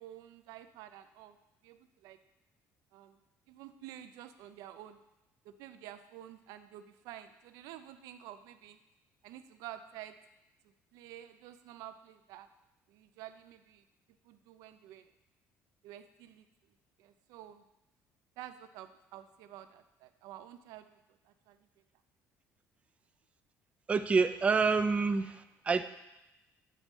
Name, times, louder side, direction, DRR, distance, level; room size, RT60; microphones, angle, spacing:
voice 1, 0.0-1.4 1.6-2.2 2.9-3.2 3.5-5.0 5.4-8.8 9.2-10.2 10.9-12.5 12.9-13.8 14.2-15.1 15.8-16.5 17.0-17.6 18.4-21.7, right 12 dB, 90° right, 10 dB, 0.4 m, -50 dB
voice 2, 23.9-25.8, right 4 dB, 20° right, 10 dB, 0.3 m, -28 dB
8.4 x 3.1 x 5.2 m, 0.94 s
cardioid pair, 125°, 6 cm